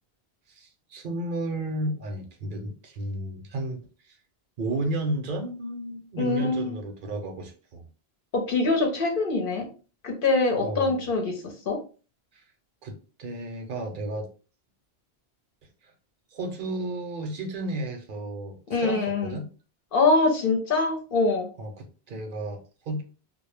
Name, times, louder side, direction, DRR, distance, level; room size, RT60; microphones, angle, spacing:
voice 1, 0.5-4.2 4.6-7.9 10.6-11.0 12.3-12.4 12.8-14.3 15.8-15.9 16.3-19.5 21.6-23.0, right 2 dB, 60° right, 4 dB, 0.7 m, -33 dB
voice 2, 6.2-6.8 8.3-9.7 10.0-11.8 18.7-19.4 19.9-21.5, left 3 dB, 60° left, 3 dB, 0.7 m, -24 dB
2.1 x 2.0 x 3.1 m, 0.36 s
omnidirectional pair, 1.1 m